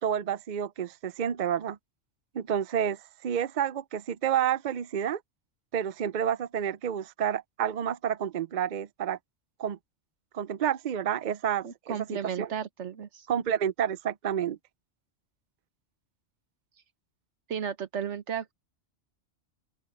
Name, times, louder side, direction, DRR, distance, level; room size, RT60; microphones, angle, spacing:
voice 1, 0.0-1.8 2.3-5.2 5.7-9.2 9.6-9.8 10.3-12.5 13.3-14.6, right 9 dB, 55° right, 0.6 m, -29 dB
voice 2, 11.6-13.3 17.5-18.5, right 8 dB, 75° right, 1.3 m, -34 dB
open air
omnidirectional pair, 1.2 m